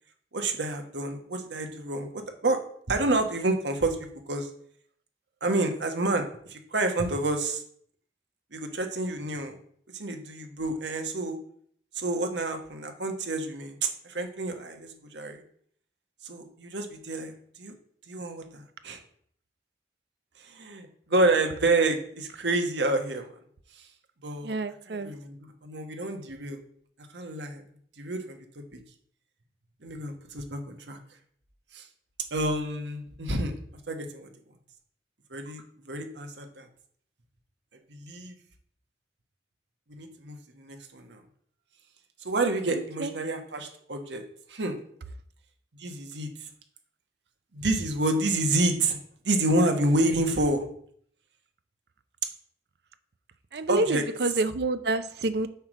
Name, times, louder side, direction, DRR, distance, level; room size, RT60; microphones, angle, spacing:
voice 1, 0.3-2.6 2.9-4.0 4.3-4.5 5.4-7.6 8.5-9.5 9.9-11.4 11.9-15.4 16.2-17.7 18.1-19.0 20.4-23.3 23.7-23.9 24.2-24.6 24.9-26.6 27.1-27.6 28.0-28.8 29.8-31.0 31.7-31.9 32.3-33.6 33.9-34.3 35.3-35.6 35.9-36.7 37.9-38.4 39.9-41.2 42.2-44.8 45.8-46.5 47.5-49.0 49.2-50.6 53.7-54.0, right 2 dB, 85° right, 5 dB, 1.2 m, -29 dB
voice 2, 24.4-25.1 43.0-43.1 53.5-55.5, right 2 dB, 70° right, 12 dB, 0.6 m, -28 dB
8.0 x 3.3 x 6.2 m, 0.62 s
head